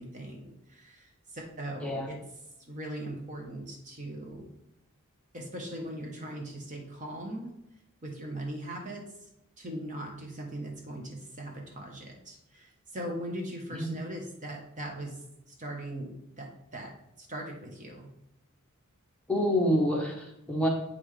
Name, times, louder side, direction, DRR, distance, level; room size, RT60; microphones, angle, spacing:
voice 1, 0.0-2.2 2.7-4.5 5.3-7.5 8.0-9.3 9.6-18.1, right 1 dB, 35° right, 1 dB, 1.1 m, -40 dB
voice 2, 19.3-20.7, equal, 5° left, -2 dB, 1.2 m, -27 dB
7.7 x 5.7 x 3.3 m, 0.84 s
head